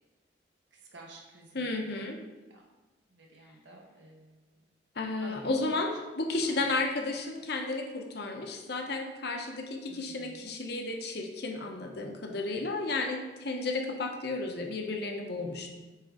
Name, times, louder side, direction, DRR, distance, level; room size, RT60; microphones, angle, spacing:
voice 1, 0.7-2.0 2.5-2.6 3.1-4.6 5.2-5.7 6.4-6.7 9.9-10.5, right 2 dB, 75° right, -1 dB, 1.2 m, -52 dB
voice 2, 1.5-2.2 4.9-15.7, left 2 dB, 60° left, 2 dB, 0.8 m, -33 dB
7.5 x 3.7 x 3.7 m, 1.1 s
head